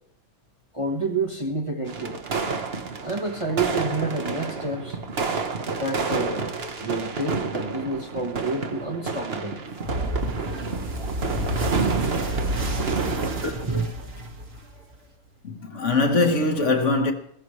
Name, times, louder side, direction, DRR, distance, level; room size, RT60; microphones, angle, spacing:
voice 1, 0.7-2.2 3.0-5.0 5.8-9.6 10.8-10.9 11.2-11.5 13.4-13.9, right 2 dB, 25° right, 1.1 m, -29 dB
sound 1, 1.9-13.5, right 4 dB, 45° right, 1.4 m, -29 dB
sound 2, 9.8-14.9, equal, 60° right, 2.3 m, -30 dB
voice 2, 15.4-17.1, left 3 dB, 55° left, 1.7 m, -22 dB
20.5 x 16.5 x 3.2 m
omnidirectional pair, 1.5 m